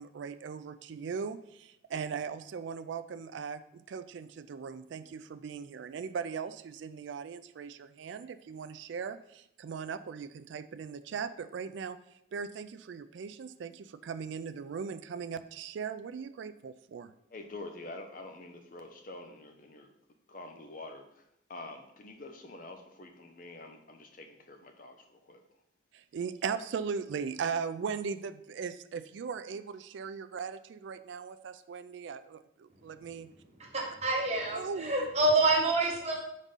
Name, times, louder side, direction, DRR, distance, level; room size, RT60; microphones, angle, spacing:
voice 1, 0.0-17.1 25.9-33.3 34.5-35.1, right 6 dB, 70° right, 11 dB, 0.3 m, -39 dB
voice 2, 17.3-19.9 20.3-25.4, left 2 dB, 45° left, 5 dB, 0.7 m, -47 dB
voice 3, 33.6-36.2, right 2 dB, 35° right, -2 dB, 1.3 m, -27 dB
5.3 x 3.6 x 5.5 m, 0.77 s
head